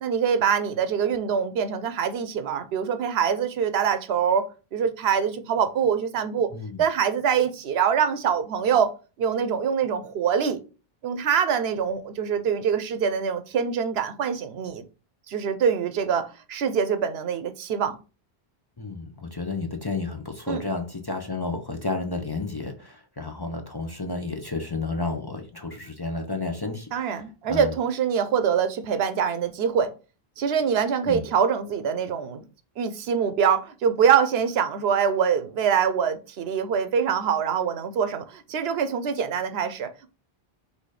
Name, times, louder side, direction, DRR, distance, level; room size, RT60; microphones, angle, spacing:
voice 1, 0.0-6.5 6.8-8.9 9.2-10.6 11.0-14.8 15.3-18.0 20.5-20.6 26.9-29.9 30.4-32.5 32.8-40.1, right 7 dB, 85° right, 0.9 m, -24 dB
voice 2, 6.5-6.8 18.8-27.2 27.5-27.7 31.1-31.3, left 3 dB, 30° left, 0.6 m, -31 dB
4.2 x 2.7 x 4.8 m
omnidirectional pair, 1.0 m